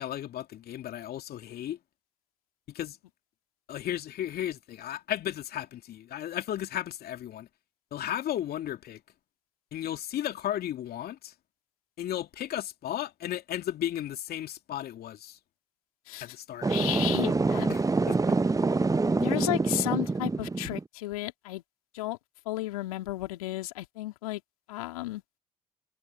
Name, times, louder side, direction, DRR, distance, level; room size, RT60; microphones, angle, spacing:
voice 1, 0.0-1.8 2.7-3.0 3.7-7.5 7.9-9.0 9.7-11.3 12.0-15.4 16.2-16.7 17.7-18.4, left 11 dB, 60° left, 2.7 m, -34 dB
sound 1, 16.6-20.8, right 3 dB, 20° right, 0.9 m, -26 dB
voice 2, 16.7-17.7 19.2-21.6 21.9-22.2 22.4-24.4 24.7-25.2, left 18 dB, 80° left, 2.8 m, -33 dB
hypercardioid pair, 45°, 18 cm